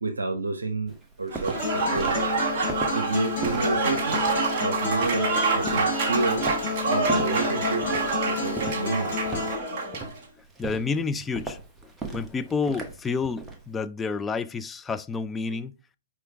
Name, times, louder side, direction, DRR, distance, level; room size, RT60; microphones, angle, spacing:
voice 1, 0.0-2.3 2.9-6.5 6.9-9.2 15.5-15.6, right 3 dB, 75° right, 0.8 m, -30 dB
Walk footsteps, 0.9-13.7, right 3 dB, 10° right, 1.0 m, -38 dB
Applause / Crowd, 1.3-10.1, right 3 dB, 35° right, 1.6 m, -27 dB
Acoustic guitar, 1.5-9.6, left 5 dB, 55° left, 2.8 m, -31 dB
voice 2, 10.6-11.6 12.1-15.8, left 4 dB, 10° left, 0.4 m, -29 dB
4.9 x 4.9 x 4.6 m
figure-of-eight pair, 120°, 0 cm